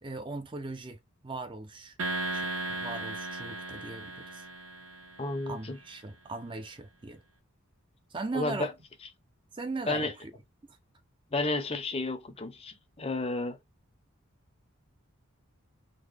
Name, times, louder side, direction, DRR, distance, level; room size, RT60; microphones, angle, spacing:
voice 1, 0.0-1.0 1.2-2.0 2.3-4.5 5.5-7.2 8.1-8.7 9.5-10.3, right 3 dB, 20° right, 0.4 m, -39 dB
sound 1, 2.0-5.5, right 2 dB, 65° right, 1.0 m, -36 dB
voice 2, 5.2-5.8 8.3-8.7 9.9-10.1 11.3-13.6, left 2 dB, 25° left, 0.5 m, -32 dB
3.7 x 2.1 x 3.2 m
head